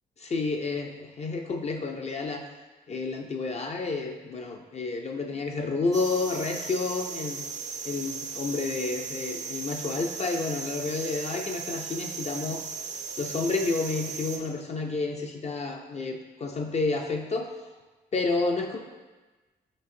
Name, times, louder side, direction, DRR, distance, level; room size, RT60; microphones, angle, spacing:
voice 1, 0.2-2.4 2.9-7.4 7.8-12.6 13.2-17.5 18.1-18.8, left 3 dB, 35° left, 3 dB, 0.4 m, -30 dB
sound 1, 5.9-14.4, right 5 dB, 40° right, 0.5 m, -37 dB
6.0 x 2.5 x 2.6 m, 1.2 s
cardioid pair, 80°, 18 cm